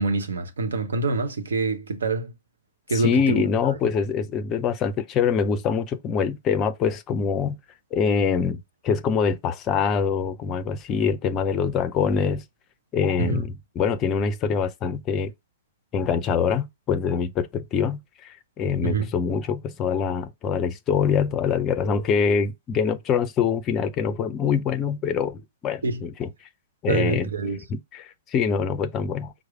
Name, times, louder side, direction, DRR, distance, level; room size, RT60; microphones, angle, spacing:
voice 1, 0.0-2.3 2.9-3.4 13.2-13.5 18.8-19.1 25.8-26.0 26.9-27.6, right 3 dB, 65° right, 0.8 m, -25 dB
voice 2, 2.9-7.6 7.9-12.4 12.9-15.3 15.9-26.3 26.8-27.3 27.7-29.3, left 6 dB, 25° left, 0.5 m, -24 dB
4.7 x 2.1 x 4.7 m
figure-of-eight pair, 105°, 0 cm